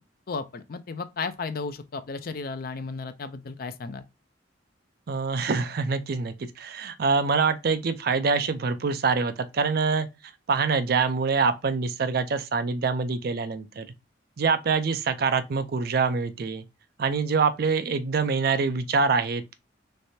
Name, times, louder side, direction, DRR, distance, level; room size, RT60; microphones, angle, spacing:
voice 1, 0.3-4.0, left 4 dB, 50° left, 0.4 m, -34 dB
voice 2, 5.1-10.1 10.5-13.9 14.4-16.6 17.0-19.6, right 4 dB, 55° right, 0.4 m, -25 dB
3.2 x 3.2 x 2.7 m
head